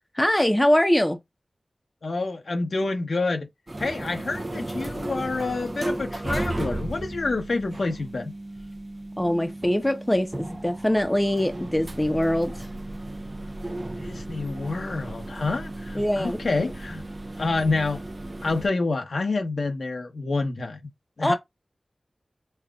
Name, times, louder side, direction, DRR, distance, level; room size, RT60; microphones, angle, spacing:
voice 1, 0.2-1.2 9.2-12.7 15.9-16.4 21.2-21.3, left 1 dB, 15° left, 0.7 m, -23 dB
voice 2, 2.0-3.5 3.8-8.3 14.0-17.0 17.4-18.0 18.4-20.8 21.2-21.3, left 3 dB, 85° left, 0.9 m, -28 dB
sound 1, 3.7-18.7, right 1 dB, 40° right, 0.5 m, -35 dB
5.6 x 2.4 x 2.3 m
wide cardioid pair, 45°, 0 cm